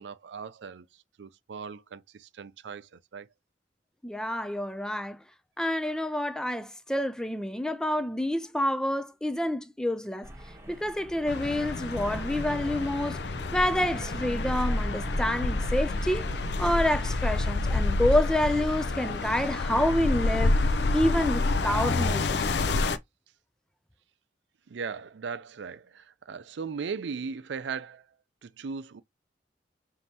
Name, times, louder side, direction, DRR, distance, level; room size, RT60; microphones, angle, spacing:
voice 1, 0.0-3.3 24.7-28.1 28.4-29.0, right 5 dB, 85° right, 0.5 m, -38 dB
voice 2, 4.0-5.2 5.6-10.3 10.7-13.2 13.5-16.3 16.6-20.6 20.9-22.4, left 1 dB, 5° left, 0.3 m, -28 dB
sound 1, 10.2-17.5, equal, 15° right, 1.3 m, -39 dB
sound 2, 11.3-23.0, left 3 dB, 70° left, 0.5 m, -28 dB
5.3 x 2.8 x 2.8 m
head